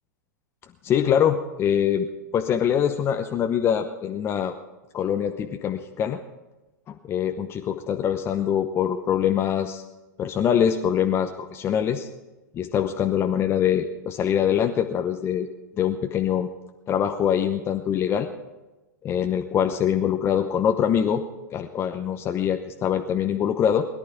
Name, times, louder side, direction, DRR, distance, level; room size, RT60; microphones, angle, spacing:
voice 1, 0.8-2.1 2.3-4.5 4.9-6.2 6.9-9.8 10.2-12.1 12.5-15.5 15.8-16.5 16.9-18.3 19.0-21.2 21.5-23.9, left 9 dB, 25° left, 6 dB, 0.8 m, -24 dB
21.0 x 11.5 x 4.5 m, 1.1 s
figure-of-eight pair, 100°, 10 cm